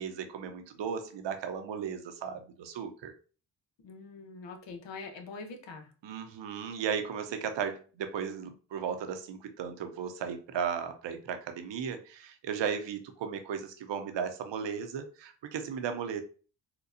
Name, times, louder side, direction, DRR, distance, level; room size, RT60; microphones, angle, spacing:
voice 1, 0.0-3.1 6.0-16.2, right 7 dB, 65° right, 7 dB, 0.7 m, -35 dB
voice 2, 3.8-5.9, left 4 dB, 70° left, 6 dB, 0.8 m, -44 dB
4.3 x 2.2 x 2.5 m, 0.37 s
supercardioid pair, 55°, 46 cm